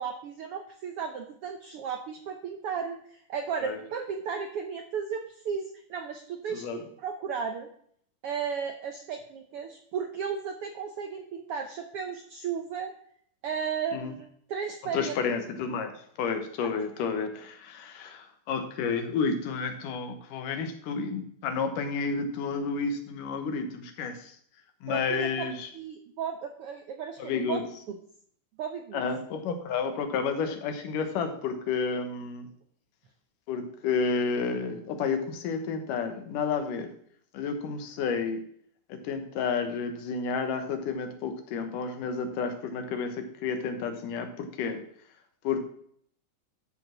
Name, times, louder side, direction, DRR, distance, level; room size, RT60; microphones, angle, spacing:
voice 1, 0.0-7.7 8.2-12.9 13.4-15.2 16.6-16.7 24.9-25.5 25.7-27.6 27.9-28.0 28.6-29.0, right 6 dB, 75° right, 5 dB, 1.3 m, -34 dB
voice 2, 6.5-6.8 13.9-14.1 14.9-24.4 24.8-25.7 27.2-27.6 28.9-32.5 33.5-36.9 37.3-38.4 38.9-44.8 45.4-45.6, left 5 dB, 80° left, 7 dB, 2.8 m, -31 dB
13.0 x 5.2 x 6.3 m, 0.63 s
omnidirectional pair, 3.7 m